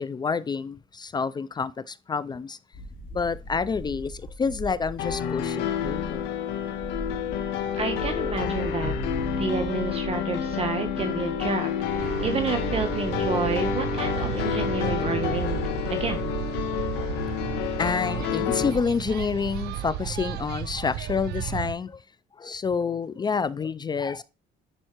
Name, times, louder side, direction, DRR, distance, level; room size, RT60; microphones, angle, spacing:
voice 1, 0.0-2.6 3.1-6.3 17.4-22.0 22.3-24.2, left 5 dB, 25° left, 0.4 m, -28 dB
sound 1, 2.7-16.4, equal, 55° left, 2.5 m, -39 dB
sound 2, 5.0-18.7, left 8 dB, 85° left, 1.4 m, -29 dB
voice 2, 7.7-8.9 9.4-15.6 15.9-16.3, right 4 dB, 35° right, 1.1 m, -30 dB
sound 3, 12.0-21.7, right 11 dB, 75° right, 0.6 m, -33 dB
11.0 x 4.4 x 3.0 m
cardioid pair, 110°, 17 cm